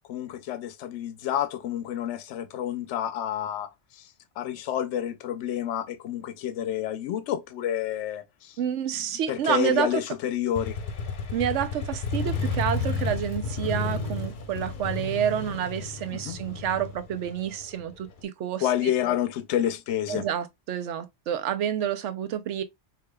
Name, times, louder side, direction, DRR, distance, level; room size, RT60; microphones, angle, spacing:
voice 1, 0.1-4.1 4.4-8.6 9.3-10.8 16.2-16.4 18.6-20.3, left 11 dB, 80° left, 0.9 m, -29 dB
voice 2, 8.6-10.0 11.3-18.7 20.1-22.6, right 9 dB, 80° right, 1.0 m, -29 dB
Motorcycle, 10.6-18.2, left 3 dB, 50° left, 0.8 m, -32 dB
4.9 x 2.8 x 2.2 m
omnidirectional pair, 1.2 m